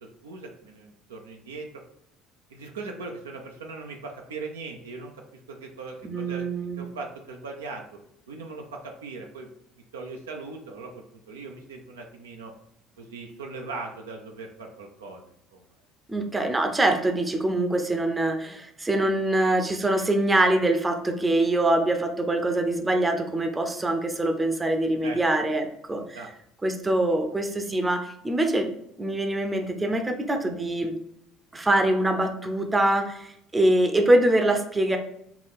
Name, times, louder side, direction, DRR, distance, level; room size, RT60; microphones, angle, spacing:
voice 1, 0.0-1.7 2.5-6.5 6.8-8.0 8.3-9.5 9.9-12.5 13.0-15.6 25.0-25.2 26.1-26.3, right 3 dB, 80° right, 2 dB, 0.5 m, -39 dB
voice 2, 6.0-6.9 16.1-26.2 26.6-28.7 29.0-31.0 31.5-35.0, right 1 dB, 20° right, 5 dB, 0.6 m, -24 dB
4.6 x 2.3 x 3.4 m, 0.75 s
figure-of-eight pair, 60°, 0 cm